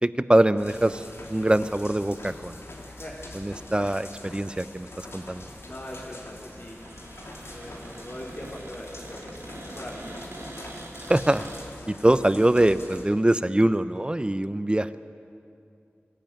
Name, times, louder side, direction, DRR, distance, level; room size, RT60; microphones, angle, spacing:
voice 1, 0.0-1.0 1.3-2.6 3.3-5.5 11.0-11.5 11.9-15.0, right 1 dB, 20° right, 13 dB, 0.7 m, -23 dB
sound 1, 0.6-13.0, left 1 dB, 75° left, 3.0 m, -44 dB
voice 2, 2.8-3.2 5.6-6.9 7.5-10.3, left 1 dB, 40° left, -7 dB, 4.1 m, -41 dB
Cupboard open or close, 4.9-11.6, right 1 dB, 80° right, 3.2 m, -44 dB
22.5 x 14.5 x 9.2 m, 2.5 s
wide cardioid pair, 55°, 4 cm